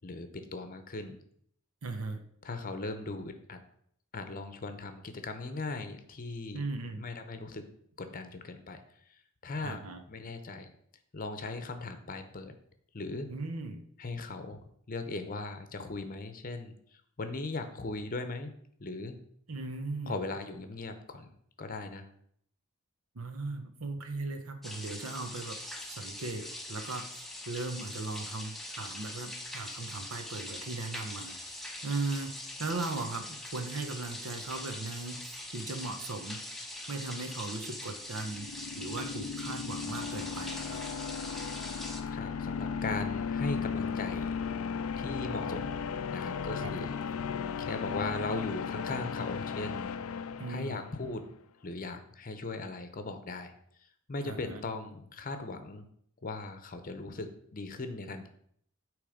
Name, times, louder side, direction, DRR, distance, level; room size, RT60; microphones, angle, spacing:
voice 1, 0.0-1.2 2.4-3.6 4.1-6.6 7.0-7.6 8.0-8.8 9.4-10.7 11.1-12.5 12.9-13.3 14.0-16.7 17.2-18.5 18.8-19.2 20.1-21.3 21.6-22.1 42.1-44.4 45.0-45.8 46.1-47.0 47.6-49.9 50.5-51.3 51.6-53.5 54.1-55.8 56.2-58.3, left 3 dB, 40° left, 8 dB, 0.7 m, -38 dB
voice 2, 1.8-2.2 6.5-7.0 9.6-10.0 13.3-13.8 19.5-20.2 23.1-25.6 25.9-35.2 35.5-36.4 36.9-38.5 38.8-40.8 46.6-46.7 50.4-50.8 54.2-54.6, right 3 dB, 75° right, 7 dB, 0.9 m, -38 dB
sound 1, 24.6-42.0, left 1 dB, ahead, 0.7 m, -42 dB
sound 2, 38.2-51.1, left 6 dB, 80° left, 0.4 m, -36 dB
8.5 x 3.2 x 5.0 m, 0.65 s
head